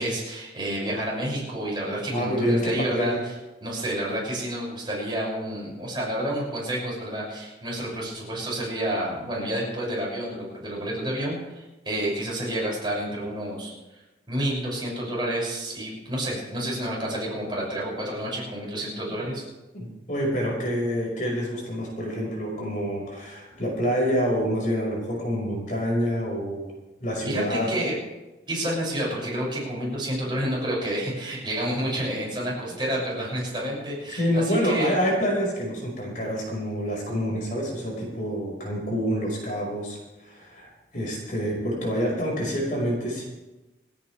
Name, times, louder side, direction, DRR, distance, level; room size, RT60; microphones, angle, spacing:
voice 1, 0.0-3.2 3.6-13.7 14.3-19.4 27.2-27.9 28.5-34.9, right 1 dB, 25° right, -5 dB, 6.9 m, -29 dB
voice 2, 2.1-3.1 19.7-26.7 27.0-27.7 34.1-43.3, equal, 45° left, -2 dB, 5.5 m, -27 dB
29.5 x 10.0 x 3.5 m, 1.1 s
head